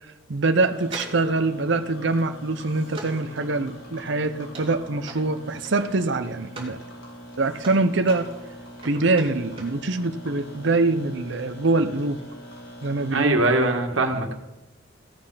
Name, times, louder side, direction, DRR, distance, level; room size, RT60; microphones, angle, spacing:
voice 1, 0.3-6.8 7.4-8.3 8.8-12.2 12.8-13.4, right 3 dB, 65° right, 8 dB, 0.8 m, -24 dB
sound 1, 0.6-13.2, equal, 80° left, 4.7 m, -43 dB
sound 2, 0.8-6.8 7.1-9.8 10.1-10.2, right 2 dB, 30° right, 2.9 m, -42 dB
voice 2, 13.1-14.3, right 2 dB, 90° right, 4 dB, 1.8 m, -21 dB
16.0 x 8.9 x 5.7 m, 0.99 s
head